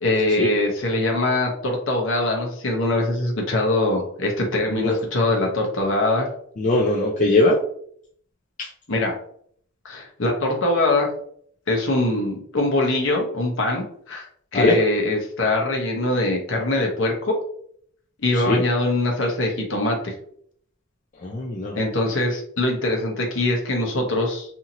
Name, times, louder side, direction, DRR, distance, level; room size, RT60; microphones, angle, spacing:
voice 1, 0.0-6.3 8.9-9.2 9.8-11.1 11.7-14.3 14.5-17.3 18.2-20.1 21.7-24.6, left 2 dB, 60° left, 0 dB, 0.8 m, -23 dB
voice 2, 6.6-7.6 14.5-14.8 18.3-18.6 21.2-21.8, left 2 dB, 35° left, -3 dB, 0.4 m, -20 dB
2.8 x 2.7 x 2.6 m, 0.64 s
head